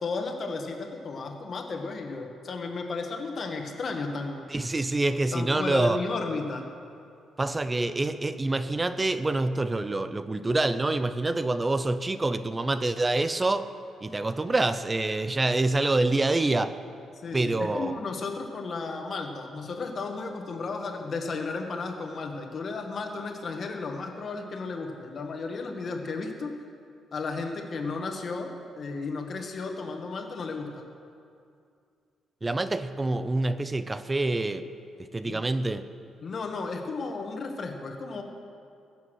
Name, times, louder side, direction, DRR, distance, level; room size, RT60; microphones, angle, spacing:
voice 1, 0.0-4.5 5.3-6.7 17.2-26.5 27.1-30.7 35.2-35.4 36.2-38.2, left 3 dB, 45° left, 1.6 m, -34 dB
voice 2, 4.5-6.0 7.4-13.7 14.0-16.8 17.3-18.0 32.4-34.7 35.0-35.9, right 2 dB, 20° right, 0.5 m, -26 dB
21.5 x 7.4 x 6.3 m
cardioid pair, 120°, 0 cm